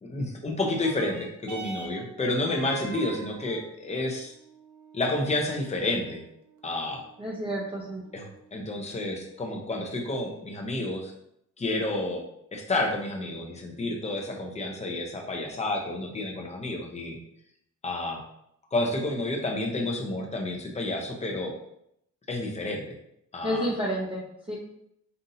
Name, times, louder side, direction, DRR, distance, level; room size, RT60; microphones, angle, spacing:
voice 1, 0.0-4.3 4.9-6.2 6.6-7.0 8.1-11.1 11.6-12.2 12.5-17.2 17.8-18.2 18.7-21.5 22.3-22.9 23.3-23.7, left 2 dB, 20° left, 0 dB, 0.7 m, -30 dB
sound 1, 0.7-9.6 10.5-10.6, right 4 dB, 75° right, 0.8 m, -45 dB
voice 2, 7.2-8.0 23.4-24.6, equal, 20° right, -4 dB, 0.7 m, -30 dB
5.5 x 2.6 x 2.7 m, 0.76 s
cardioid pair, 145°, 30 cm